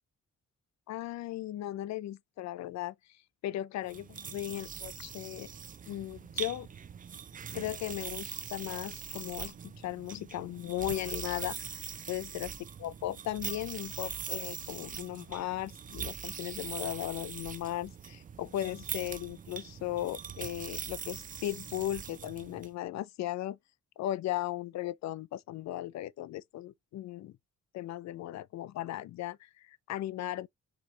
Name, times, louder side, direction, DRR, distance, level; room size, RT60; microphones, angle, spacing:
voice 1, 0.9-2.9 3.4-5.5 5.9-6.7 7.5-11.6 12.1-12.5 12.8-23.6 24.0-27.3 27.7-30.5, left 13 dB, 65° left, 0.5 m, -37 dB
sound 1, 3.8-22.7, right 7 dB, 30° right, 0.4 m, -42 dB
4.6 x 3.3 x 2.8 m
cardioid pair, 95°, 29 cm